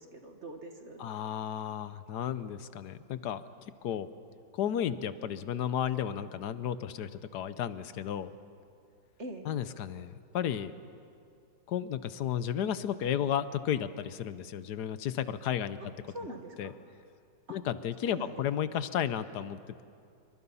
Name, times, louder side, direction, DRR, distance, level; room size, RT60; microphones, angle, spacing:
voice 1, 0.0-1.1 9.2-9.5 16.1-16.7 17.5-17.6 18.1-18.4, right 1 dB, 40° right, 5 dB, 1.9 m, -43 dB
voice 2, 1.0-4.1 4.5-8.3 9.4-10.7 11.7-15.8 16.6-16.7 17.5-19.8, left 9 dB, 70° left, 13 dB, 1.3 m, -33 dB
27.0 x 24.0 x 5.6 m, 2.4 s
omnidirectional pair, 1.8 m